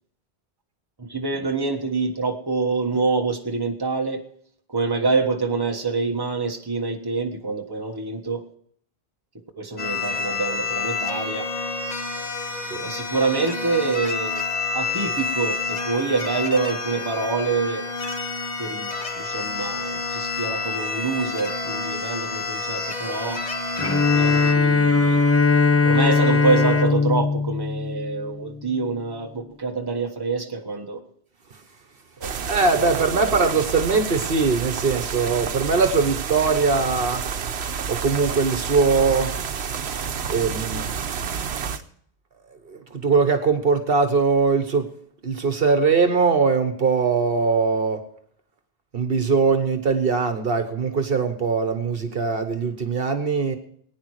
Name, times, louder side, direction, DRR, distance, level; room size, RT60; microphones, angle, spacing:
voice 1, 1.0-4.2 4.7-8.4 9.6-11.5 12.8-14.4 14.7-17.9 18.6-23.4 24.1-25.2 25.8-31.0 32.2-32.8 33.1-33.3, right 4 dB, 20° right, 3 dB, 1.4 m, -26 dB
sound 1, 9.8-24.5, left 4 dB, 40° left, 1.3 m, -29 dB
Bowed string instrument, 23.8-28.7, left 4 dB, 15° left, 0.8 m, -20 dB
sound 2, 32.2-41.8, right 7 dB, 80° right, 1.1 m, -29 dB
voice 2, 32.5-37.2 37.9-39.3 40.3-41.1 42.5-44.9 45.2-48.0 48.9-53.6, right 4 dB, 60° right, 7 dB, 1.4 m, -21 dB
19.5 x 9.8 x 4.8 m, 0.64 s
omnidirectional pair, 1.1 m